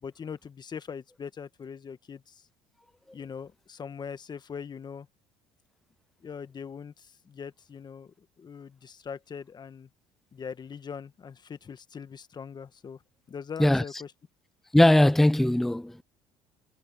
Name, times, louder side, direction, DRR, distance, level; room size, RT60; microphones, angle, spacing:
voice 1, 0.0-2.5 3.1-5.1 6.2-9.9 10.3-13.0 13.3-14.1, left 6 dB, 35° left, 1.4 m, -41 dB
voice 2, 14.7-16.0, left 1 dB, ahead, 0.4 m, -20 dB
supercardioid pair, 80°, 13 cm